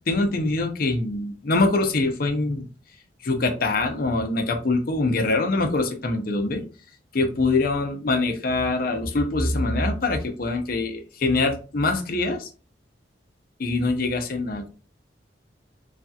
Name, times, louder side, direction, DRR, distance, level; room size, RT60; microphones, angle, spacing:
voice 1, 0.1-2.7 3.2-6.6 7.1-12.5 13.6-14.7, left 2 dB, 55° left, 6 dB, 0.6 m, -24 dB
3.2 x 2.7 x 2.3 m, 0.35 s
head